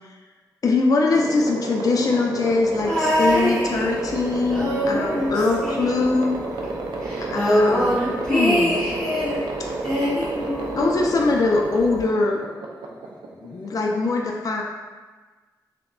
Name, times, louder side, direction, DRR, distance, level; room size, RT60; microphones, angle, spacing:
voice 1, 0.6-6.4 7.2-8.0 8.3-8.8 10.7-12.4 13.4-14.6, left 3 dB, 50° left, 1 dB, 0.4 m, -22 dB
sound 1, 1.1-13.8, right 3 dB, 85° right, 0.4 m, -31 dB
sound 2, 2.8-4.1 4.5-6.4 6.6-6.7 7.0-9.4 9.8-11.1 12.0-12.1, equal, 10° left, 1.3 m, -23 dB
3.4 x 2.1 x 2.2 m, 1.3 s
cardioid pair, 65°, 8 cm